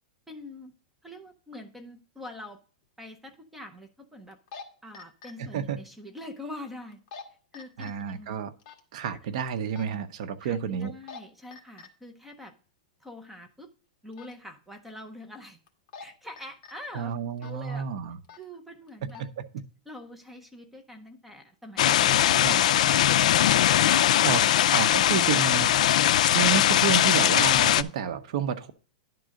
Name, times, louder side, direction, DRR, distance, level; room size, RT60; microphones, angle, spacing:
voice 1, 0.3-0.7 1.0-2.6 3.0-4.4 4.8-7.0 7.5-8.4 10.4-12.5 13.0-13.7 14.0-15.6 16.0-17.9 18.3-19.2 19.9-23.1 24.0-24.6, left 1 dB, 5° right, 5 dB, 0.6 m, -44 dB
sound 1, 2.3-2.4 4.3-4.6 4.9-5.3 6.9-7.2 7.5-7.9 8.6-8.8 9.7-9.9 10.8-11.2 11.5-11.9 14.1-14.3 15.7-16.0 16.4-16.7 17.4-17.6 18.2-18.4 18.9-19.2, left 5 dB, 35° left, 1.4 m, -44 dB
voice 2, 5.4-5.8 7.8-8.5 8.9-10.9 16.9-18.2 19.2-19.3 19.5-19.6 22.4-22.6 24.2-24.4 24.7-25.7 26.3-28.7, right 7 dB, 50° right, 10 dB, 0.8 m, -30 dB
sound 2, 21.8-27.8, left 11 dB, 60° left, 0.4 m, -21 dB
10.5 x 3.8 x 6.3 m, 0.40 s
supercardioid pair, 170°, 4 cm